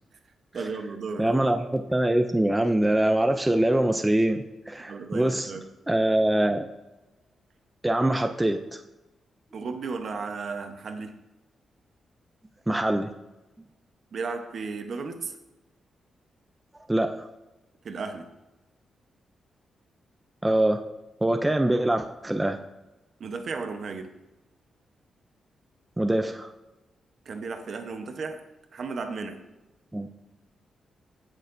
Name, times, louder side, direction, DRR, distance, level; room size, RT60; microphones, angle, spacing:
voice 1, 0.5-1.3 4.8-5.7 9.5-11.2 14.1-15.3 17.8-18.3 23.2-24.1 27.3-28.4 28.7-29.4, right 4 dB, 50° right, 6 dB, 0.9 m, -34 dB
voice 2, 1.2-5.5 5.9-6.7 7.8-8.8 12.7-13.1 16.9-17.3 20.4-20.8 21.2-22.6 26.0-26.5 29.9-30.1, right 1 dB, 10° right, 5 dB, 0.4 m, -24 dB
16.0 x 6.4 x 2.6 m, 1.0 s
wide cardioid pair, 155°, 0 cm